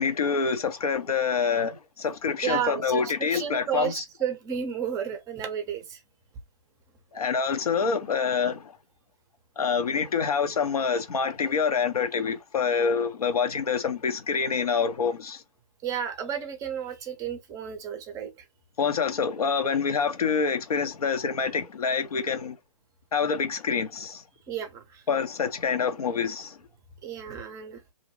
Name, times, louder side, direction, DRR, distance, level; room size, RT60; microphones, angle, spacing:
voice 1, 0.0-4.0 7.1-8.7 9.6-15.4 18.8-22.6 23.1-24.2 25.1-26.6, left 6 dB, 75° left, 0.7 m, -26 dB
voice 2, 2.4-6.0 15.8-18.3 24.5-25.0 27.0-27.8, right 8 dB, 15° right, 0.5 m, -32 dB
2.5 x 2.0 x 3.0 m
hypercardioid pair, 130°, 19 cm